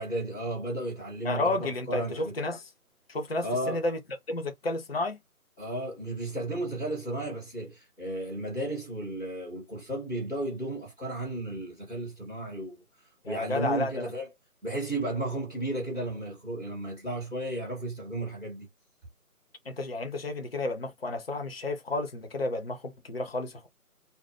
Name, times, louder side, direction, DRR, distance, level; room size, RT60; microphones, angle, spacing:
voice 1, 0.0-2.3 3.4-3.8 5.6-12.8 13.2-14.3 14.6-18.7, right 1 dB, ahead, 1.0 m, -34 dB
voice 2, 1.2-2.6 3.1-4.0 4.3-5.2 13.2-14.1 19.7-23.7, left 2 dB, 40° left, 0.6 m, -31 dB
2.5 x 2.2 x 3.3 m
figure-of-eight pair, 160°, 45 cm